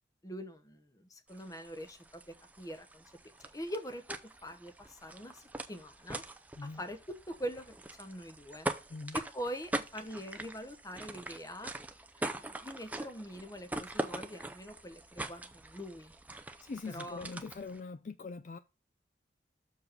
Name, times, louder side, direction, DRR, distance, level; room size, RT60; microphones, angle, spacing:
voice 1, 0.2-3.0 3.4-5.4 5.7-6.2 6.8-8.7 9.1-11.7 12.2-16.1 16.9-17.3, equal, 20° left, 0.9 m, -43 dB
sound 1, 1.3-17.8, right 1 dB, 10° right, 0.5 m, -43 dB
voice 2, 16.6-18.6, left 4 dB, 45° left, 0.3 m, -42 dB
6.7 x 4.7 x 5.5 m
head